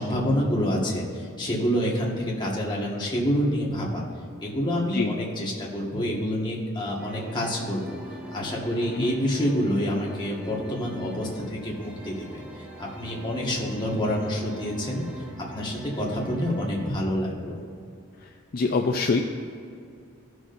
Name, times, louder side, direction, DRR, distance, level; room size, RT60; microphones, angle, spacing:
voice 1, 0.0-4.0 4.4-8.0 8.3-12.4 12.8-15.0 15.4-17.6, equal, 20° left, -3 dB, 1.6 m, -27 dB
sound 1, 7.0-16.9, equal, 5° right, 0.7 m, -42 dB
voice 2, 18.5-19.2, left 4 dB, 45° left, 3 dB, 0.4 m, -24 dB
16.0 x 6.2 x 2.6 m, 2.4 s
head